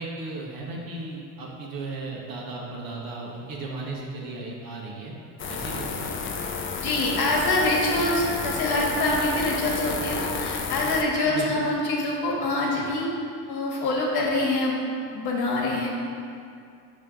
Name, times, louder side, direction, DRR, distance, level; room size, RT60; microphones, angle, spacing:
voice 1, 0.0-5.1 5.5-6.2 8.2-8.3 11.2-11.6, right 3 dB, 45° right, -2 dB, 1.3 m, -36 dB
sound 1, 5.4-11.0, left 5 dB, 25° left, 0.5 m, -31 dB
voice 2, 6.8-13.1 13.5-15.9, left 2 dB, 50° left, -3 dB, 1.5 m, -25 dB
5.7 x 3.2 x 5.1 m, 2.4 s
hypercardioid pair, 75°, 48 cm